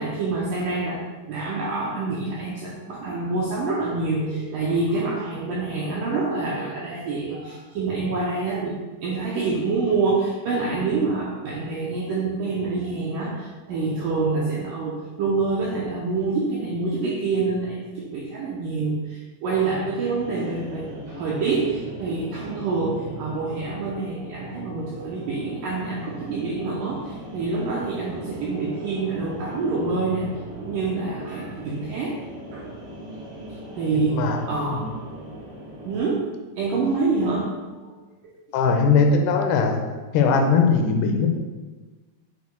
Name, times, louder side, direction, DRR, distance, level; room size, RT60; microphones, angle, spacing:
voice 1, 0.0-30.3 30.6-32.2 32.5-32.7 33.6-34.8 35.9-36.3 36.6-37.5 37.8-37.9, right 3 dB, 85° right, -4 dB, 1.9 m, -26 dB
sound 1, 20.1-36.0, right 1 dB, 60° right, 1.2 m, -39 dB
voice 2, 33.9-34.4 34.7-34.9 38.5-39.8 40.1-41.3, left 5 dB, 80° left, 4 dB, 2.7 m, -20 dB
8.4 x 6.2 x 2.2 m, 1.3 s
omnidirectional pair, 4.7 m